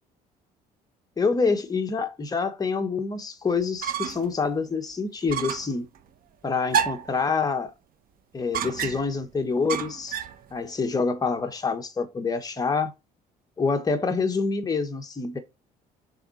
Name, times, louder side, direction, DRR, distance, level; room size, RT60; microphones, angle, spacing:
voice 1, 1.2-5.9 6.4-7.7 8.3-10.2 10.5-12.9 13.6-15.4, left 4 dB, 20° left, 1.3 m, -26 dB
sound 1, 3.6-4.3 4.7-4.8 5.3-5.7 6.7-7.2 8.5-9.2 9.7-10.4, right 8 dB, 60° right, 1.1 m, -29 dB
7.0 x 3.7 x 4.2 m
cardioid pair, 110°, 17 cm